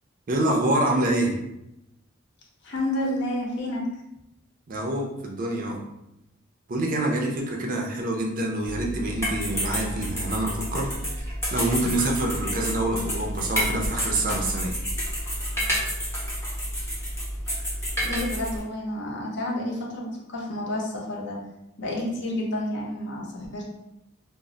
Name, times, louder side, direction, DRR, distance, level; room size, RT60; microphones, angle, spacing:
voice 1, 0.3-1.3 4.7-5.8 6.7-10.9 11.5-14.8, right 1 dB, 40° right, 0 dB, 0.4 m, -26 dB
voice 2, 2.6-3.8 18.0-21.4 21.8-23.6, left 1 dB, 55° left, -2 dB, 0.6 m, -30 dB
sound 1, 8.7-18.6, equal, 10° left, 0.7 m, -29 dB
2.1 x 2.0 x 3.7 m, 0.88 s
head